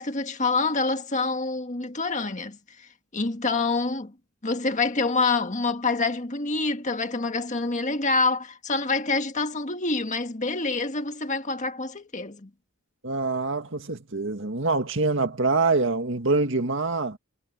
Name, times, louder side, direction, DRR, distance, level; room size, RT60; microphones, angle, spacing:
voice 1, 0.0-2.6 3.1-4.1 4.4-12.5, left 3 dB, 35° left, 1.7 m, -26 dB
voice 2, 13.0-17.2, right 3 dB, 60° right, 2.0 m, -25 dB
head